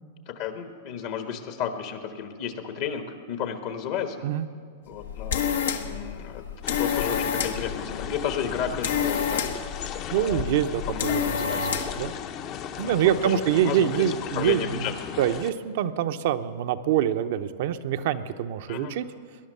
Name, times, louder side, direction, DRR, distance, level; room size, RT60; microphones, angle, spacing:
voice 1, 0.3-4.2 4.9-5.5 5.8-6.4 6.8-9.5 10.1-10.4 10.9-11.7 12.8-15.1 18.7-18.9, left 8 dB, 55° left, 6 dB, 1.4 m, -33 dB
sound 1, 4.9-12.1, left 7 dB, 85° left, 1.2 m, -29 dB
sound 2, 6.6-15.5, left 9 dB, 40° left, 0.8 m, -37 dB
voice 2, 10.1-12.1 12.8-14.9 15.2-19.1, right 10 dB, 60° right, 9 dB, 0.8 m, -25 dB
19.5 x 11.0 x 6.8 m, 2.1 s
hypercardioid pair, 125°, 0 cm